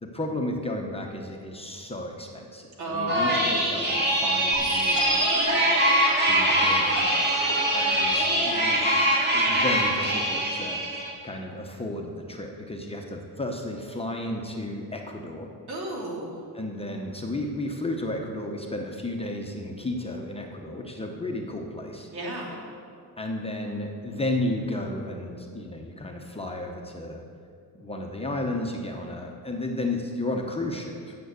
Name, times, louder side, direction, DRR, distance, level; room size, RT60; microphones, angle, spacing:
voice 1, 0.0-5.3 6.2-7.4 7.7-15.5 16.5-22.1 23.2-27.2 27.7-31.2, left 1 dB, 15° left, 1 dB, 0.8 m, -33 dB
voice 2, 2.8-3.4 5.3-5.7 15.7-16.4 22.1-22.5, right 1 dB, 70° right, -2 dB, 2.7 m, -32 dB
sound 1, 3.1-11.1, right 1 dB, 25° right, 1.9 m, -23 dB
sound 2, 4.5-10.0, right 3 dB, 45° right, 1.4 m, -32 dB
9.0 x 6.8 x 8.1 m, 2.4 s
cardioid pair, 155°, 39 cm